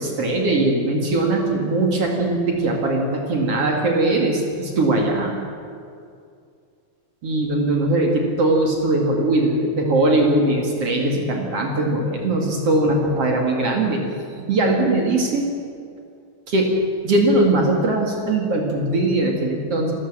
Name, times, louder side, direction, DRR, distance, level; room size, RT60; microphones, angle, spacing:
voice 1, 0.0-5.4 7.2-14.0 14.3-15.5 16.5-16.7 17.0-19.9, right 2 dB, 50° right, 0 dB, 3.3 m, -20 dB
28.0 x 14.0 x 7.5 m, 2.3 s
omnidirectional pair, 3.5 m